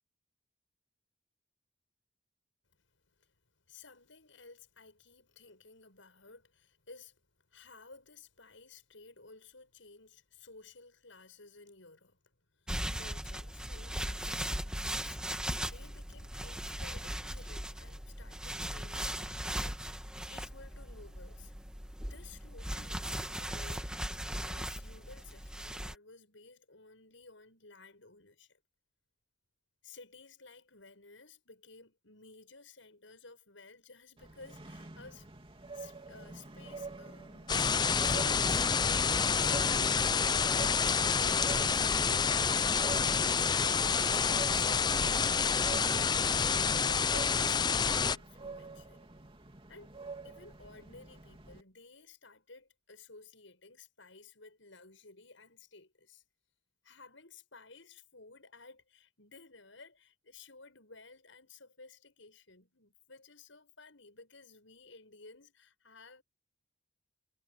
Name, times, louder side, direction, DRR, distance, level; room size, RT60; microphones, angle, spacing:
voice 1, 2.8-3.3 3.7-7.2 7.5-21.5 22.0-28.6 29.8-35.3 35.7-39.5 40.4-49.1 49.7-49.9 50.2-56.2 56.8-66.2, left 3 dB, 80° left, 7.3 m, -55 dB
sound 1, 12.7-25.9, right 1 dB, 5° right, 1.5 m, -38 dB
sound 2, 34.2-51.6, right 4 dB, 30° right, 3.0 m, -48 dB
sound 3, 37.5-48.2, left 6 dB, 20° left, 0.5 m, -28 dB
head